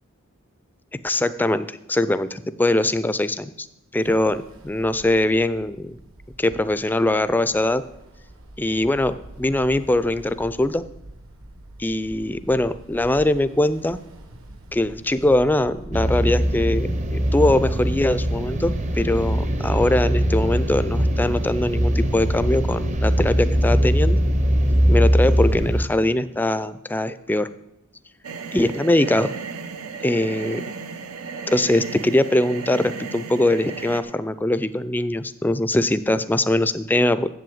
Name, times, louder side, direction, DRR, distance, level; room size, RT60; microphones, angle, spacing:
voice 1, 1.0-3.7 3.9-6.0 6.4-7.8 8.6-10.8 11.8-14.0 14.7-24.2 24.9-27.5 28.5-29.3 30.0-30.6 31.5-37.3, left 1 dB, 10° left, 13 dB, 0.3 m, -22 dB
Ocean, 4.0-19.4, right 1 dB, 70° right, 1.2 m, -44 dB
sound 1, 15.9-25.9, equal, 35° right, 0.6 m, -21 dB
sound 2, 28.2-34.0, right 5 dB, 90° right, 0.8 m, -34 dB
7.7 x 7.5 x 7.8 m, 0.84 s
head